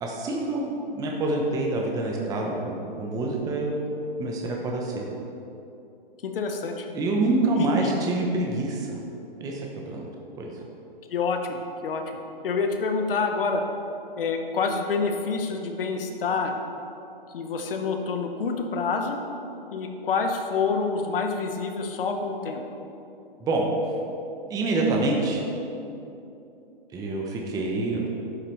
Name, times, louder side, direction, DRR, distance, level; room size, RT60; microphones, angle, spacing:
voice 1, 0.0-3.9 4.2-5.1 6.9-9.0 9.4-10.1 10.4-10.5 23.4-23.6 24.5-25.4 26.9-28.1, right 2 dB, 10° right, -1 dB, 0.7 m, -26 dB
voice 2, 6.2-6.9 7.5-7.9 11.1-12.0 12.4-13.6 14.2-16.6 17.3-19.2 19.7-22.6, left 4 dB, 70° left, 4 dB, 1.0 m, -27 dB
11.5 x 5.8 x 3.1 m, 2.8 s
hypercardioid pair, 135°, 29 cm